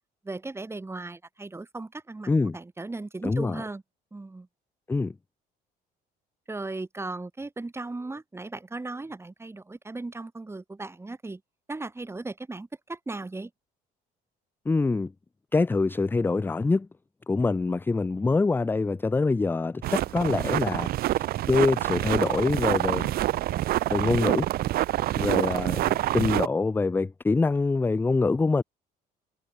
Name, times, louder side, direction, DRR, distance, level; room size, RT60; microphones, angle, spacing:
voice 1, 0.2-3.8 4.1-4.5 6.5-11.4 11.7-13.5, right 2 dB, 15° right, 5.2 m, -37 dB
voice 2, 2.3-2.6 3.2-3.6 4.9-5.1 14.7-15.1 15.5-16.9 17.3-20.9 21.5-23.1 23.9-24.5 25.2-28.6, left 3 dB, 10° left, 0.4 m, -25 dB
sound 1, 19.8-26.5, right 15 dB, 65° right, 0.7 m, -27 dB
cardioid pair, 110°, 17 cm